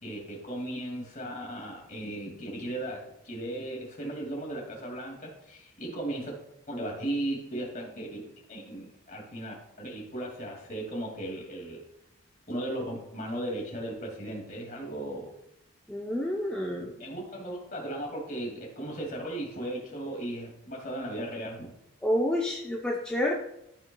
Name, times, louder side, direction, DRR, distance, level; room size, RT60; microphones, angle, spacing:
voice 1, 0.0-6.4 6.7-11.8 12.5-15.3 17.0-21.7, right 1 dB, 35° left, 0 dB, 2.3 m, -36 dB
voice 2, 15.9-16.9 22.0-23.3, left 1 dB, 5° left, -3 dB, 0.6 m, -29 dB
13.5 x 5.7 x 2.3 m, 0.81 s
head